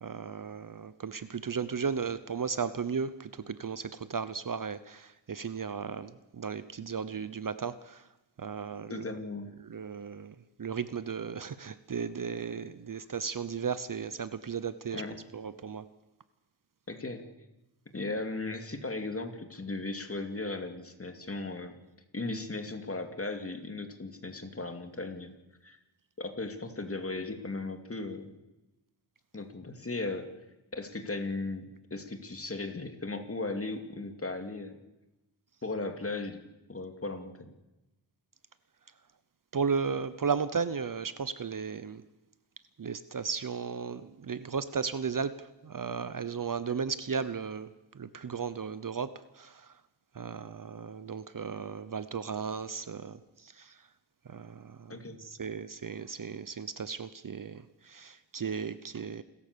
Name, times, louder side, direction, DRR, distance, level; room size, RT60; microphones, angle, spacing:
voice 1, 0.0-8.1 8.4-9.0 9.6-15.0 15.3-15.9 39.5-42.0 42.8-49.8 50.1-53.8 54.3-59.2, right 6 dB, 45° right, 14 dB, 0.9 m, -35 dB
voice 2, 8.9-9.5 14.9-15.2 16.9-17.2 17.9-21.8 22.1-25.3 25.6-25.8 26.2-28.3 29.3-30.3 30.7-34.8 35.6-36.4 36.7-37.5 46.7-46.8 54.9-55.2, left 3 dB, 30° left, 6 dB, 2.6 m, -37 dB
28.0 x 14.5 x 6.9 m, 0.99 s
wide cardioid pair, 95°, 48 cm